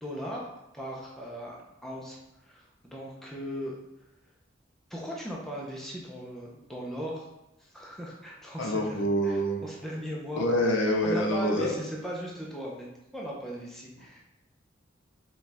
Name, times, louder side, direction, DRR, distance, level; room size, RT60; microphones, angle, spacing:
voice 1, 0.0-0.5 0.7-1.6 1.8-2.2 2.4-3.8 4.9-7.3 7.6-10.5 11.0-14.2, equal, ahead, -4 dB, 0.6 m, -38 dB
voice 2, 8.6-9.6 10.4-11.7, equal, 85° left, 1 dB, 0.7 m, -26 dB
5.1 x 2.4 x 3.4 m, 0.95 s
head